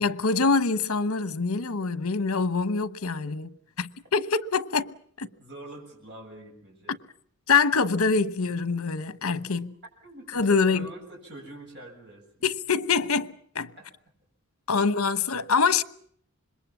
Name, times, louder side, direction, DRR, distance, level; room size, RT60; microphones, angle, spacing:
voice 1, 0.0-5.3 7.5-9.7 10.3-10.9 12.4-13.7 14.7-15.8, left 4 dB, 75° left, 1.0 m, -25 dB
voice 2, 5.2-7.0 10.0-10.4 10.6-12.3 13.8-13.9 14.8-14.9, right 2 dB, 50° right, 7.3 m, -45 dB
26.5 x 21.5 x 7.2 m
head